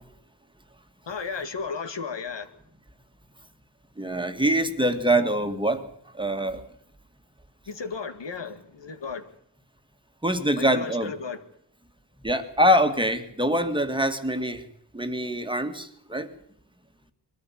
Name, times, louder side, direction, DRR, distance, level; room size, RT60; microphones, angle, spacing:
voice 1, 1.1-2.5 7.7-9.3 10.6-11.4, left 5 dB, 80° left, 2.2 m, -34 dB
voice 2, 4.0-5.9 6.2-6.6 10.2-11.1 12.2-14.6 14.9-16.3, equal, 10° right, 1.8 m, -24 dB
22.5 x 13.5 x 8.7 m
wide cardioid pair, 135°, 43 cm